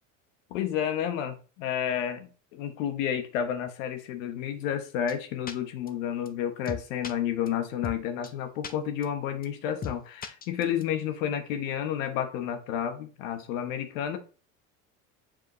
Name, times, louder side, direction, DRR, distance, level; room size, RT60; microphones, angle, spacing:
voice 1, 0.5-14.2, left 9 dB, 75° left, 8 dB, 1.2 m, -31 dB
sound 1, 5.1-5.2 5.5-5.6 5.9-6.0 6.2-6.3 6.6-7.1 7.5-7.6 7.8-8.0 8.2-8.3 8.6-8.7 9.0-9.1 9.4-9.5 9.8-10.0 10.2-10.8, left 6 dB, 20° left, 0.7 m, -36 dB
7.3 x 5.0 x 3.1 m, 0.36 s
hypercardioid pair, 90°, 40 cm